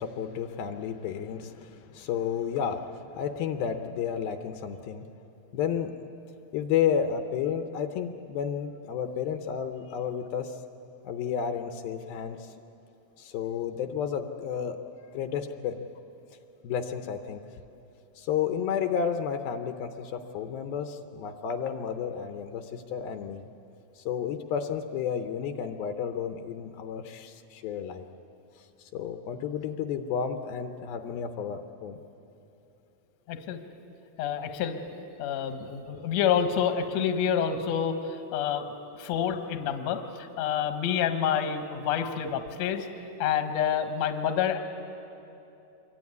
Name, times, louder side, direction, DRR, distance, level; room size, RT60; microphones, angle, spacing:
voice 1, 0.0-5.1 5.5-6.1 6.5-10.6 11.0-12.5 13.2-14.8 15.1-15.9 16.6-17.4 18.2-23.5 24.0-28.1 28.9-32.0 42.0-42.1, left 8 dB, 75° left, 7 dB, 2.6 m, -32 dB
voice 2, 33.3-33.6 34.2-34.8 35.2-38.0 38.3-38.7 39.0-42.9 43.2-44.6, left 8 dB, 60° left, 7 dB, 2.1 m, -28 dB
25.5 x 23.0 x 9.5 m, 2.9 s
omnidirectional pair, 4.6 m